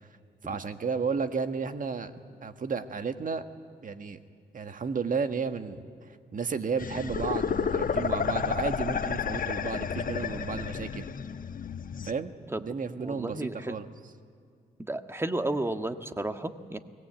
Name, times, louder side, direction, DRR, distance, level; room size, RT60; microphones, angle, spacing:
voice 1, 0.4-2.1 2.4-3.4 3.8-4.2 4.5-5.8 6.3-11.1 12.0-13.9, right 5 dB, 50° right, 8 dB, 1.6 m, -32 dB
sound 1, 6.8-12.1, left 6 dB, 50° left, 1.0 m, -31 dB
voice 2, 13.0-13.8 14.8-16.8, right 2 dB, 15° right, 7 dB, 1.6 m, -32 dB
23.5 x 18.5 x 9.2 m, 2.2 s
supercardioid pair, 45°, 18 cm